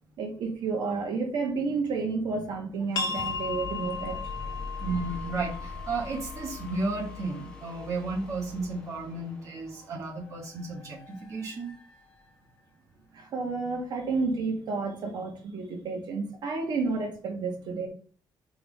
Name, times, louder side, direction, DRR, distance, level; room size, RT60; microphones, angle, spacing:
voice 1, 0.2-4.5 13.1-17.9, right 4 dB, 65° right, 1.6 m, -31 dB
sound 1, 2.8-12.6, left 4 dB, 10° left, 1.2 m, -44 dB
sound 2, 2.9-8.3, left 4 dB, 50° left, 1.5 m, -37 dB
voice 2, 4.8-11.7, right 3 dB, 40° right, 1.6 m, -33 dB
5.5 x 4.1 x 5.3 m
cardioid pair, 175°, 8 cm